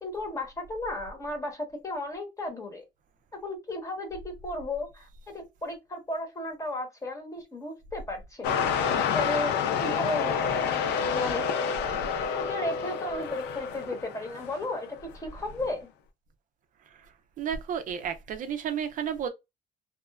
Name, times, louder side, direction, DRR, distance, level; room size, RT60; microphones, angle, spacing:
voice 1, 0.0-2.8 3.4-8.6 9.1-12.0 12.3-14.9 15.1-15.9, left 2 dB, 20° left, 1.0 m, -34 dB
sound 1, 8.4-14.8 15.5-15.7, left 7 dB, 90° left, 0.5 m, -28 dB
voice 2, 17.4-19.3, right 8 dB, 50° right, 0.4 m, -32 dB
2.9 x 2.0 x 2.3 m
cardioid pair, 110°, 17 cm